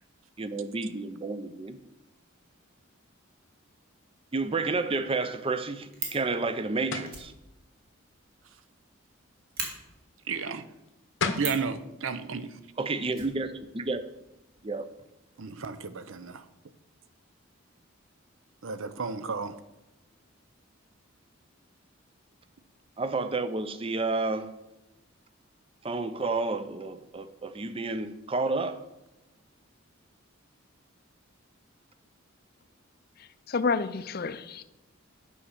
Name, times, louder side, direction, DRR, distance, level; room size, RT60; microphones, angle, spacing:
voice 1, 0.4-1.8 4.3-7.3 12.8-14.0 14.6-14.9 23.0-24.5 25.8-28.8, right 3 dB, 25° right, 0.5 m, -30 dB
Fire, 5.9-6.3 7.0-8.8 9.1-9.2 9.5-9.7 11.3-11.7 13.1-14.0 14.3-14.4 14.6-14.7, right 4 dB, 45° right, 1.8 m, -37 dB
sound 1, 6.9-7.2 10.9-11.0 11.2-11.6, left 4 dB, 65° left, 0.8 m, -30 dB
voice 2, 10.3-10.7 11.4-12.5 15.4-16.4 18.6-19.5, right 5 dB, 70° right, 0.7 m, -33 dB
voice 3, 33.2-34.6, left 4 dB, 45° left, 0.5 m, -30 dB
8.4 x 5.6 x 6.5 m
head